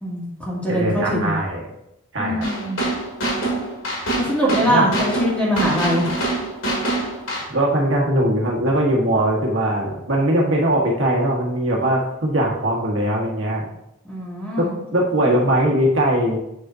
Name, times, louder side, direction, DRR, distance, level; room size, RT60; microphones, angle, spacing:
voice 1, 0.0-1.3 2.2-2.8 4.2-6.1 14.0-14.7, equal, 5° left, -6 dB, 2.4 m, -22 dB
voice 2, 0.7-1.6 2.1-2.5 4.6-4.9 7.5-13.6 14.6-16.4, right 1 dB, 70° right, -2 dB, 1.5 m, -20 dB
sound 1, 2.4-7.4, right 2 dB, 70° left, 2.3 m, -25 dB
7.6 x 6.5 x 2.7 m, 0.86 s
head